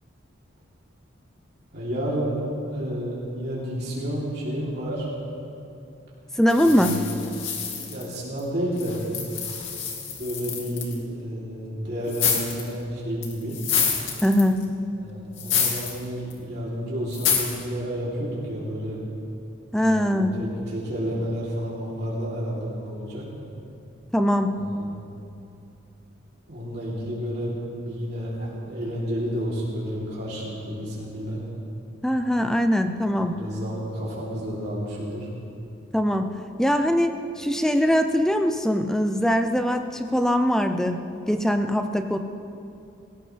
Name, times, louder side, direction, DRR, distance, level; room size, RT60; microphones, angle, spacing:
voice 1, 1.7-2.4 2.7-5.1 6.6-7.1 7.9-9.0 10.1-13.6 15.0-19.0 19.8-23.2 24.5-24.9 26.5-31.4 33.0-35.3, equal, 55° right, -8 dB, 3.4 m, -31 dB
voice 2, 6.4-6.9 14.2-14.7 19.7-20.4 24.1-24.6 32.0-33.4 35.9-42.2, equal, 5° left, 7 dB, 0.6 m, -22 dB
sound 1, 6.5-8.4 8.8-10.9 12.1-12.7 13.2-14.6 15.4-16.0 16.3-16.4 17.1-17.6, left 7 dB, 85° left, 2.3 m, -27 dB
19.5 x 17.0 x 3.4 m, 2.7 s
head